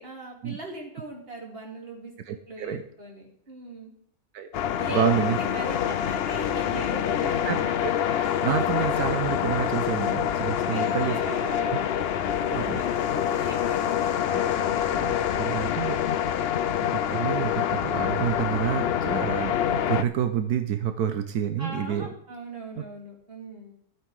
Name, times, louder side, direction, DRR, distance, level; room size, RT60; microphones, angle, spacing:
voice 1, 0.0-3.9 4.7-7.8 10.7-14.0 14.5-14.8 15.4-15.9 21.6-23.7, right 2 dB, 40° right, 0 dB, 2.9 m, -40 dB
voice 2, 2.3-2.8 4.3-4.5 4.9-5.4 7.4-11.2 12.5-12.8 14.3-16.4 16.9-19.5 19.9-22.1 22.8-22.9, right 9 dB, 90° right, 8 dB, 1.4 m, -29 dB
sound 1, 4.5-20.0, left 9 dB, 60° left, 0.6 m, -26 dB
13.0 x 9.1 x 4.8 m, 0.66 s
omnidirectional pair, 1.6 m